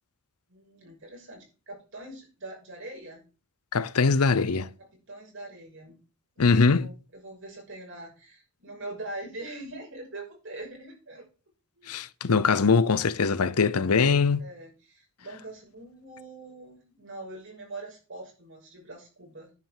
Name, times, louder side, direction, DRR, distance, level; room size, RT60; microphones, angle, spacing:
voice 1, 0.5-3.2 4.8-6.0 6.4-11.2 11.8-11.9 14.4-19.5, right 2 dB, 55° right, 6.4 m, -43 dB
voice 2, 3.7-4.7 6.4-6.9 11.9-14.4, left 4 dB, 85° left, 0.7 m, -22 dB
10.0 x 5.8 x 7.3 m
head